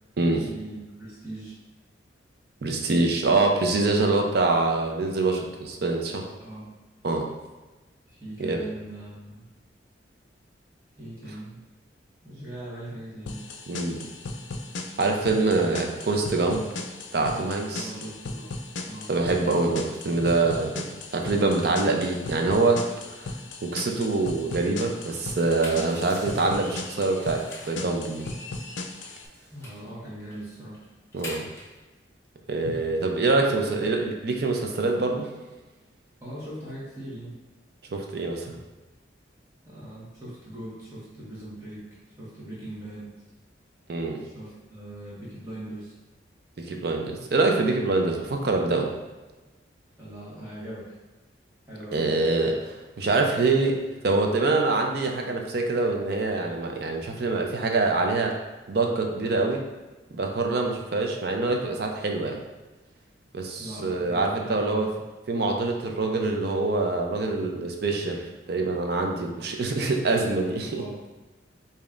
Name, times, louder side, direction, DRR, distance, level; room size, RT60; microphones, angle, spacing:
voice 1, 0.4-1.6 3.4-3.5 6.4-6.7 8.1-9.5 11.0-11.6 12.2-13.5 17.7-18.5 18.8-19.1 29.5-30.8 33.6-33.8 36.2-37.4 39.6-41.9 42.2-43.1 44.2-45.9 50.0-51.0 51.7-52.3 63.6-65.0 70.6-71.0, right 1 dB, 15° right, -9 dB, 1.3 m, -40 dB
voice 2, 2.6-6.3 7.0-7.3 8.4-8.7 13.7-14.0 15.0-16.7 17.1-17.9 19.1-20.9 21.1-22.9 23.6-28.3 31.1-31.5 32.5-35.3 37.9-38.6 43.9-44.2 46.6-48.9 51.9-53.8 54.0-58.4 58.7-59.7 60.1-62.4 63.3-64.9 65.3-70.8, right 3 dB, 60° right, 2 dB, 0.5 m, -25 dB
sound 1, 13.3-29.3, left 3 dB, 80° left, 0.4 m, -37 dB
sound 2, 25.3-27.8 28.2-29.9 30.3-30.4 30.7-31.8, left 1 dB, 15° left, 0.7 m, -43 dB
5.0 x 2.7 x 2.5 m, 1.2 s
head